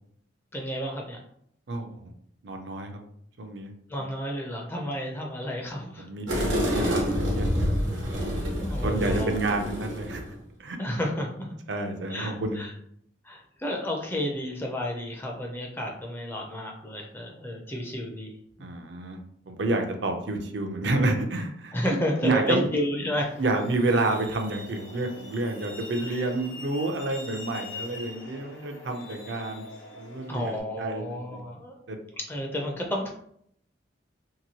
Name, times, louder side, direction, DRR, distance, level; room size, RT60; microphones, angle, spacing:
voice 1, 0.5-1.2 3.9-6.1 8.6-9.4 10.8-11.3 12.1-12.7 13.2-18.3 18.6-18.7 21.7-23.3 26.1-26.3 30.3-31.8 32.3-33.1, equal, 10° left, 0 dB, 0.4 m, -31 dB
voice 2, 1.7-2.0 2.4-2.9 3.4-3.7 6.0-8.0 8.8-10.2 10.6-10.8 11.7-12.7 18.6-19.2 19.5-21.7 22.2-22.7 23.4-29.6 30.0-31.4 31.9-32.0, right 2 dB, 65° right, 4 dB, 0.5 m, -29 dB
sound 1, 6.3-10.3, equal, 85° right, 1.1 m, -27 dB
Truck, 23.2-30.6, left 2 dB, 80° left, 0.9 m, -43 dB
2.8 x 2.6 x 2.8 m, 0.68 s
head